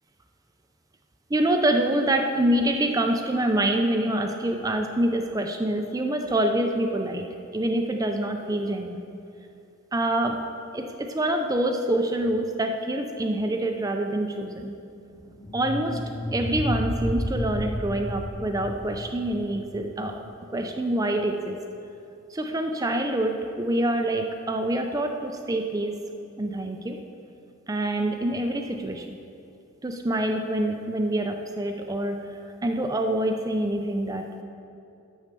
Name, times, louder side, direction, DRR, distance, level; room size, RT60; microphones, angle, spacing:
voice 1, 1.3-7.3 7.5-9.0 9.9-10.4 10.7-14.8 15.5-16.0 16.3-20.2 20.5-21.6 22.3-26.0 26.4-27.0 27.7-29.2 29.8-34.4, right 1 dB, 15° right, 4 dB, 0.4 m, -26 dB
sound 1, 15.1-20.3, equal, 15° left, 1.0 m, -32 dB
9.1 x 6.4 x 6.7 m, 2.6 s
head